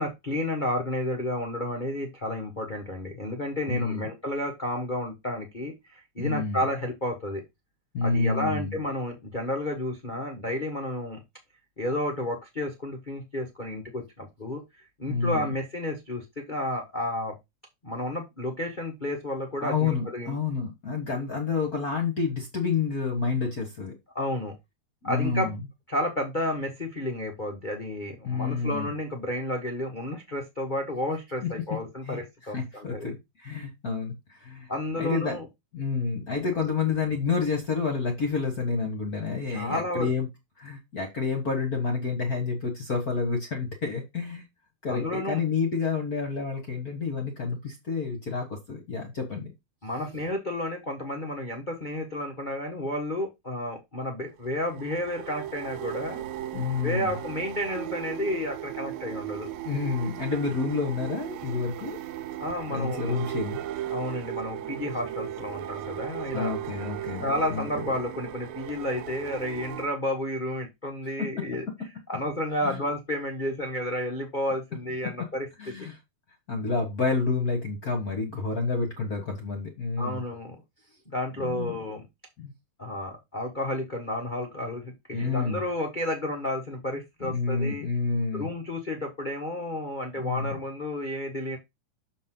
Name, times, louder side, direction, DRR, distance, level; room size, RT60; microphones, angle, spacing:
voice 1, 0.0-7.4 8.0-11.2 11.8-14.6 15.0-17.3 17.8-20.4 24.1-24.5 25.0-25.5 25.9-33.1 34.7-35.5 39.5-40.1 44.9-45.4 49.8-56.2 56.8-59.5 62.4-63.2 63.9-66.6 67.2-71.6 72.1-75.9 80.0-80.6 81.1-82.1 82.8-87.8 88.3-91.6, left 1 dB, 75° left, 2 dB, 0.4 m, -31 dB
voice 2, 3.7-4.1 6.2-6.6 7.9-8.8 15.1-15.6 19.6-23.9 25.0-25.6 28.2-28.9 31.4-31.5 32.0-34.7 35.0-35.4 35.7-40.3 40.6-44.4 44.8-49.5 56.5-57.1 59.6-62.0 62.7-63.6 66.3-67.7 71.2-71.3 72.6-72.8 75.6-76.0 76.5-80.2 81.4-81.8 82.4-82.5 85.1-85.6 87.2-88.5 90.2-90.6, left 4 dB, 45° left, 4 dB, 1.2 m, -29 dB
sound 1, 54.4-69.9, right 12 dB, 75° right, 2.0 m, -37 dB
7.1 x 5.3 x 3.8 m, 0.20 s
omnidirectional pair, 3.5 m